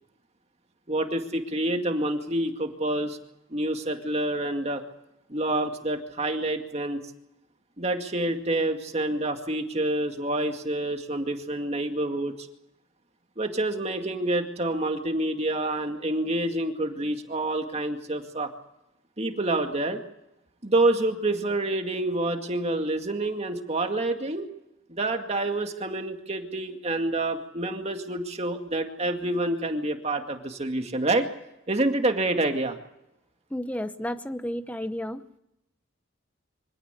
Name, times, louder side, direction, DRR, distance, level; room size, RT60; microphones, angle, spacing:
voice 1, 0.9-3.2 3.5-4.8 5.3-7.0 7.8-12.5 13.4-18.5 19.2-20.0 20.6-24.5 24.9-31.3 31.7-32.8, right 2 dB, 30° right, 5 dB, 2.2 m, -27 dB
voice 2, 33.5-35.4, left 1 dB, 5° left, 11 dB, 0.9 m, -32 dB
25.0 x 17.0 x 8.3 m, 0.87 s
head